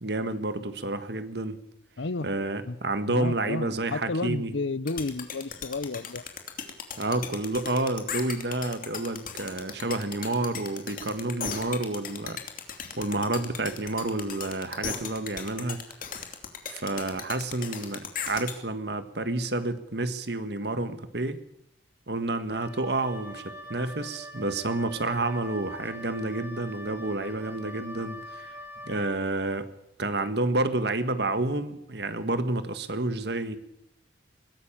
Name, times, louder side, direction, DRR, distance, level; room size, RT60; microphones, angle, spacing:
voice 1, 0.0-1.6 2.2-4.5 7.0-12.4 13.0-15.8 16.7-21.4 22.1-28.5 28.9-29.7 30.0-33.6, right 2 dB, 60° right, 10 dB, 1.6 m, -29 dB
voice 2, 2.0-2.3 2.7-2.8 3.1-6.2, left 3 dB, 75° left, 18 dB, 0.8 m, -32 dB
sound 1, 4.9-18.5, left 7 dB, 45° left, 2.8 m, -36 dB
Wind instrument woodwind instrument, 22.5-29.2, equal, 10° right, 3.0 m, -43 dB
21.5 x 16.5 x 7.3 m, 0.80 s
head